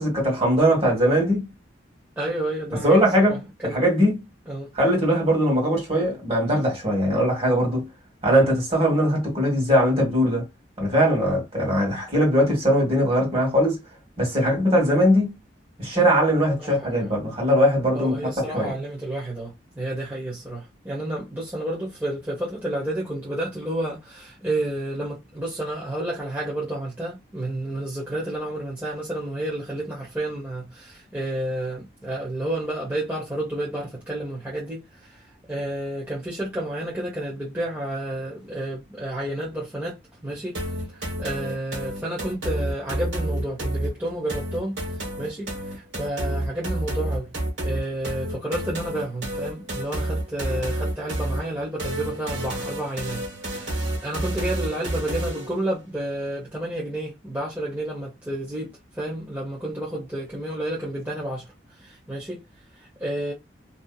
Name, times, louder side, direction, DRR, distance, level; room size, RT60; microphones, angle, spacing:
voice 1, 0.0-1.5 2.8-3.4 3.7-4.2 4.8-7.9 8.2-10.5 10.8-13.8 14.2-15.3 15.8-18.7, equal, 35° right, 1.7 m, -20 dB
voice 2, 2.2-3.8 4.5-4.7 16.6-17.1 17.9-40.0 40.2-40.6 40.9-47.3 47.6-53.2 53.5-62.4 62.7-63.3, right 1 dB, 10° right, 0.8 m, -31 dB
sound 1, 40.5-55.6, right 1 dB, 80° right, 1.3 m, -30 dB
2.7 x 2.6 x 2.3 m
head